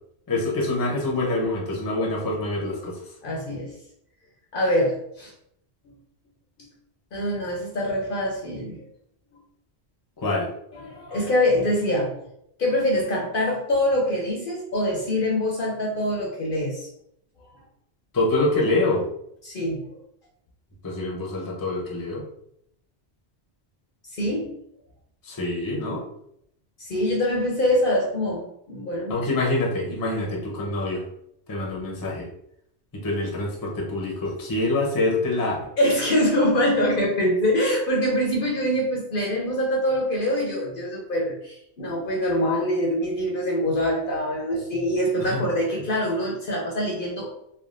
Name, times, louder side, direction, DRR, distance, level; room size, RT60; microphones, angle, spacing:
voice 1, 0.3-2.9 10.2-10.5 18.1-19.0 20.8-22.2 25.3-26.0 29.1-31.0 31.5-32.2 33.0-35.6 45.2-45.4, left 2 dB, 25° left, -3 dB, 0.6 m, -25 dB
voice 2, 3.2-3.7 4.5-5.3 7.1-8.8 10.7-12.1 12.6-16.9 19.4-19.9 24.1-24.5 26.8-29.2 35.8-47.3, left 1 dB, 60° left, -1 dB, 0.7 m, -24 dB
3.3 x 2.2 x 2.4 m, 0.73 s
omnidirectional pair, 1.1 m